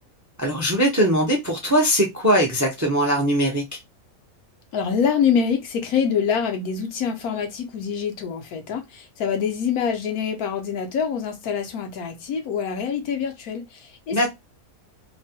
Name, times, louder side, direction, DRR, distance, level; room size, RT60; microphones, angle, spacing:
voice 1, 0.4-3.6 14.1-14.3, equal, 25° right, 0.3 m, -20 dB
voice 2, 4.7-14.3, left 7 dB, 85° left, 1.2 m, -25 dB
3.0 x 2.1 x 2.7 m
omnidirectional pair, 1.5 m